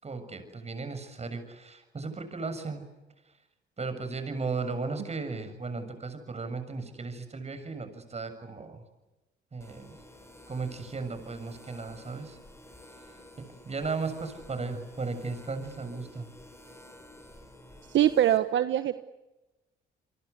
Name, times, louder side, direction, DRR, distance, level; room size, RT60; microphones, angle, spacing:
voice 1, 0.0-2.8 3.8-8.8 9.5-10.0 10.5-12.4 13.1-13.2 13.7-16.3, right 4 dB, 35° right, 9 dB, 7.1 m, -36 dB
sound 1, 9.6-18.4, left 1 dB, 15° left, 6.4 m, -52 dB
voice 2, 17.9-19.0, right 11 dB, 70° right, 10 dB, 1.3 m, -23 dB
29.0 x 24.0 x 8.3 m, 1.0 s
cardioid pair, 90°, 20 cm